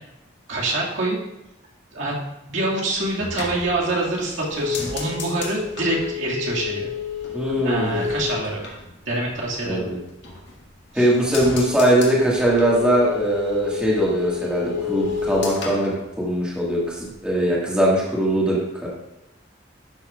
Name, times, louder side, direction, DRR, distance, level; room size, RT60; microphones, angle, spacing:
voice 1, 0.5-1.2 1.9-2.1 2.5-6.9 7.6-8.6 9.1-9.9 10.9-11.1, right 2 dB, 85° right, -4 dB, 2.1 m, -25 dB
sound 1, 2.9-9.7 10.0-10.7 11.0-16.7 17.0-17.5, left 6 dB, 70° left, 1.7 m, -31 dB
voice 2, 7.3-8.1 9.7-10.0 10.9-18.9, right 1 dB, 5° right, -6 dB, 1.8 m, -21 dB
11.5 x 7.1 x 2.4 m, 0.92 s
head